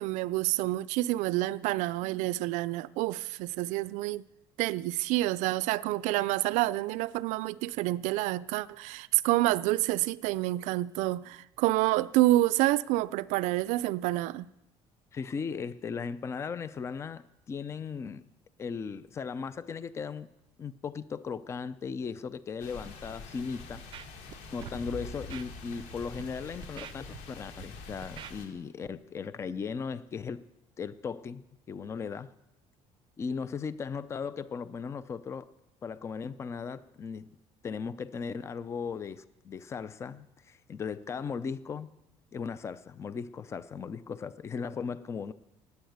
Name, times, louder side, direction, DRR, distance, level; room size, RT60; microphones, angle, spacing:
voice 1, 0.0-4.2 4.6-14.5, right 17 dB, 85° right, 0.5 m, -28 dB
voice 2, 15.1-18.2 18.6-20.3 20.6-23.8 24.5-30.5 30.8-32.3 33.2-35.5 35.8-37.3 37.6-42.0 42.3-45.3, left 5 dB, 25° left, 0.5 m, -37 dB
sound 1, 22.6-28.5, left 3 dB, 80° left, 3.3 m, -45 dB
Scratching (performance technique), 23.7-24.3 24.6-24.8 25.3-25.4 26.0-26.2 26.6-27.6 28.0-28.3 28.8-28.9, right 11 dB, 45° right, 0.6 m, -45 dB
19.5 x 9.4 x 8.0 m
cardioid pair, 170°, 12 cm